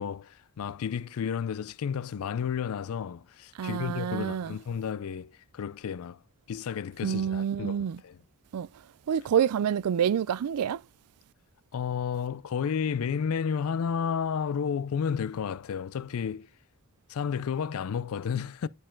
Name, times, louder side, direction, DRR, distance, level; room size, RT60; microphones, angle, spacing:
voice 1, 0.0-6.2 6.5-8.2 11.7-16.5 17.1-18.7, left 7 dB, 65° left, 0.4 m, -32 dB
voice 2, 3.6-4.5 7.0-8.0 8.5-8.7 9.1-10.8, right 8 dB, 85° right, 0.4 m, -27 dB
9.6 x 4.5 x 4.4 m
head